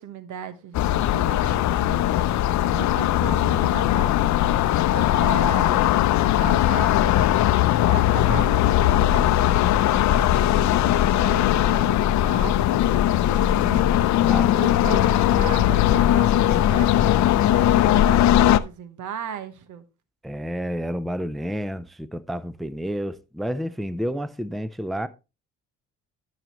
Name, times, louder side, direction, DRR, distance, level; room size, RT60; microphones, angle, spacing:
voice 1, 0.0-2.0 2.7-5.8 6.4-7.4 7.9-14.1 14.6-17.1 17.5-19.8, right 8 dB, 80° right, 1.2 m, -37 dB
sound 1, 0.7-18.6, left 12 dB, 65° left, 0.5 m, -19 dB
voice 2, 14.2-15.0 20.2-25.1, equal, ahead, 0.4 m, -30 dB
12.0 x 6.4 x 3.0 m
cardioid pair, 90°, 30 cm